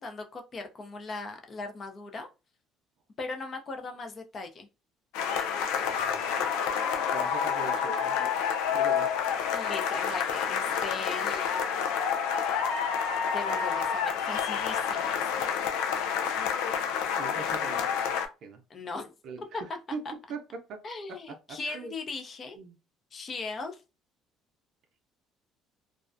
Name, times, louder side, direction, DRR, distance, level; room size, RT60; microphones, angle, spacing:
voice 1, 0.0-2.3 3.2-4.7 9.5-11.7 13.3-15.5 18.7-19.1 20.0-20.1 20.8-22.6 23.1-23.8, left 3 dB, 35° left, 0.5 m, -39 dB
sound 1, 5.1-18.3, left 7 dB, 90° left, 0.4 m, -29 dB
voice 2, 5.8-8.3 8.7-9.1 17.2-17.9 18.4-18.6 19.2-19.4 19.9-20.0 20.3-20.4 20.7-20.8 21.5-21.9 22.6-22.8, right 4 dB, 55° right, 0.5 m, -41 dB
2.4 x 2.1 x 2.5 m
cardioid pair, 130°, 0 cm